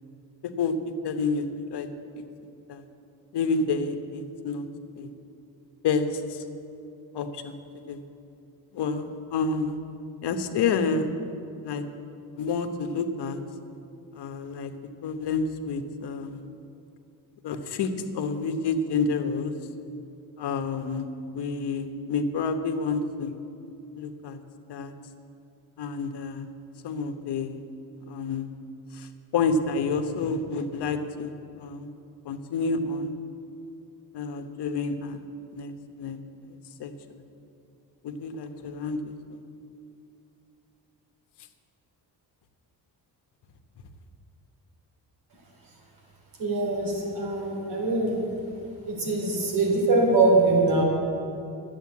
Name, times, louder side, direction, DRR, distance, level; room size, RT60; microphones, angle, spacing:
voice 1, 1.0-1.5 1.7-1.9 2.7-2.8 3.3-4.7 5.0-5.1 5.8-6.4 7.1-7.6 7.9-8.0 8.7-9.8 10.2-11.1 11.6-11.8 12.4-13.4 14.1-14.8 15.0-16.4 17.4-19.5 20.4-21.1 21.3-23.3 24.0-24.4 24.7-24.9 25.8-26.5 26.8-27.6 28.1-28.5 28.9-29.1 29.3-31.3 31.6-31.9 32.2-33.1 34.1-35.2 35.5-36.2 36.4-36.9 38.0-39.4, left 4 dB, 75° left, 7 dB, 1.1 m, -29 dB
voice 2, 46.4-48.2 48.9-50.8, right 2 dB, 80° right, -1 dB, 3.7 m, -23 dB
11.5 x 8.1 x 8.4 m, 2.7 s
cardioid pair, 105°, 40 cm